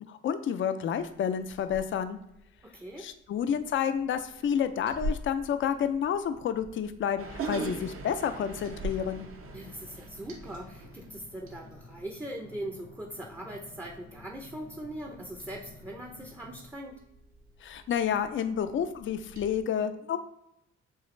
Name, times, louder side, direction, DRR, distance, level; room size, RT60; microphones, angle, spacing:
voice 1, 0.1-2.2 3.0-9.3 17.6-20.2, left 8 dB, 40° left, 10 dB, 0.4 m, -30 dB
Liquid, 1.0-19.6, equal, 65° right, 1.4 m, -46 dB
voice 2, 2.6-3.1 9.5-17.0, right 1 dB, 10° right, 0 dB, 0.6 m, -41 dB
sound 1, 7.2-10.9, right 4 dB, 45° right, 0.7 m, -40 dB
sound 2, 8.7-16.7, left 3 dB, 70° left, 1.1 m, -52 dB
7.1 x 2.4 x 3.1 m, 0.83 s
cardioid pair, 90°, 30 cm